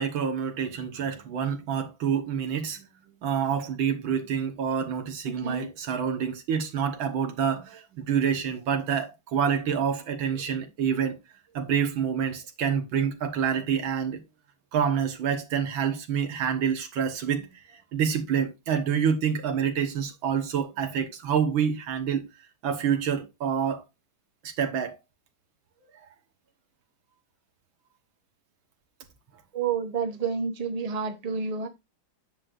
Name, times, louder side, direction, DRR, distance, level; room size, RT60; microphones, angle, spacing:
voice 1, 0.0-2.9 3.2-11.2 11.5-14.2 14.7-17.5 17.9-22.3 22.6-23.8 24.4-25.0, right 7 dB, 75° right, 2.1 m, -27 dB
voice 2, 5.2-5.7 29.5-31.7, right 5 dB, 40° right, 0.5 m, -29 dB
9.7 x 7.5 x 2.5 m
omnidirectional pair, 2.2 m